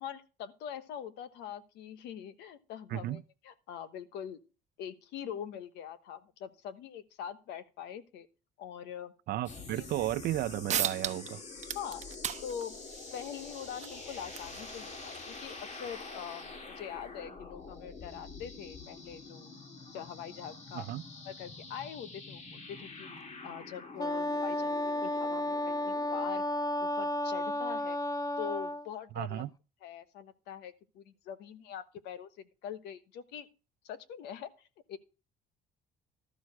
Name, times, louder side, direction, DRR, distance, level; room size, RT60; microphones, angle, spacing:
voice 1, 0.0-4.4 4.8-8.3 8.6-9.1 9.8-9.9 11.7-12.0 12.4-12.8 13.1-19.5 19.9-20.8 21.3-23.1 23.4-26.4 26.8-28.0 28.4-29.4 29.8-32.3 32.6-33.5 33.8-34.5 34.9-35.0, left 9 dB, 90° left, 1.1 m, -43 dB
voice 2, 2.9-3.2 9.3-11.4 20.7-21.0 29.1-29.5, right 14 dB, 70° right, 0.6 m, -34 dB
sound 1, 9.4-26.3, left 3 dB, 45° left, 2.2 m, -47 dB
sound 2, 10.3-10.4 10.7-11.3 11.6-16.7, right 9 dB, 45° right, 0.9 m, -39 dB
Wind instrument woodwind instrument, 24.0-28.9, left 1 dB, 20° left, 0.6 m, -32 dB
12.5 x 6.4 x 4.8 m
cardioid pair, 110°, 17 cm